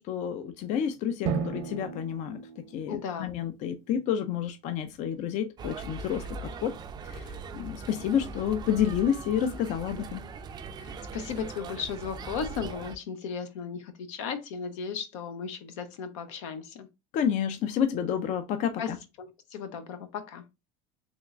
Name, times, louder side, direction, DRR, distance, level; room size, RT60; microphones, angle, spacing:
voice 1, 0.0-2.4 2.7-6.2 6.6-6.8 7.1-7.3 7.5-10.2 17.1-19.0, left 9 dB, 50° left, 0.5 m, -29 dB
Drum, 1.3-3.8, right 6 dB, 80° right, 0.7 m, -35 dB
voice 2, 2.9-3.3 10.8-16.9 18.8-18.9 19.2-20.4, left 6 dB, 85° left, 0.8 m, -36 dB
sound 1, 5.6-13.0, right 4 dB, 25° right, 0.4 m, -40 dB
3.6 x 3.1 x 2.4 m
supercardioid pair, 115°, 16 cm